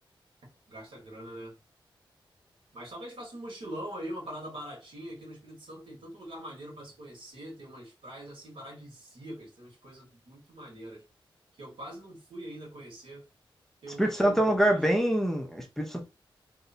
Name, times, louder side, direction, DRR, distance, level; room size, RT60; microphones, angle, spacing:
voice 1, 0.7-1.6 2.7-11.0 11.5-13.2 13.8-14.8, right 1 dB, 90° right, 1.4 m, -43 dB
voice 2, 14.0-16.0, right 1 dB, 5° left, 0.4 m, -25 dB
2.8 x 2.1 x 2.5 m
wide cardioid pair, 150°, 9 cm